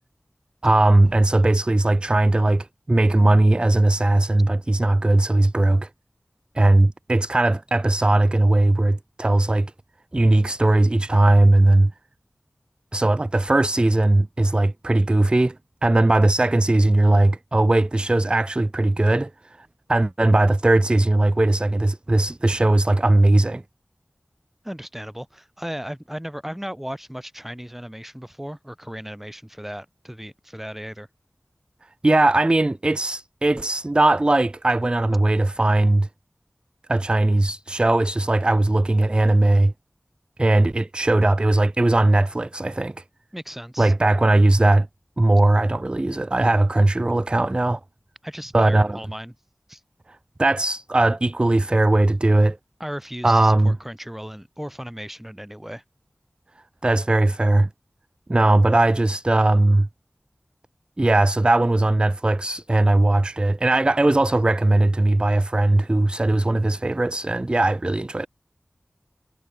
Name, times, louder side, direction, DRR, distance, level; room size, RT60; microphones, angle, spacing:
voice 1, 0.6-5.9 6.6-9.7 10.1-11.9 12.9-15.6 15.8-19.3 19.9-23.6 32.0-36.1 36.9-39.7 40.4-42.9 43.8-44.9 45.2-47.8 48.5-49.0 50.4-52.6 53.2-53.8 56.8-57.7 58.3-59.9 61.0-68.3, right 2 dB, 25° right, 0.4 m, -19 dB
voice 2, 24.6-31.1 43.3-43.9 48.2-49.3 49.7-49.8 52.8-55.8, equal, 5° right, 3.0 m, -36 dB
wide cardioid pair, 60°, 4 cm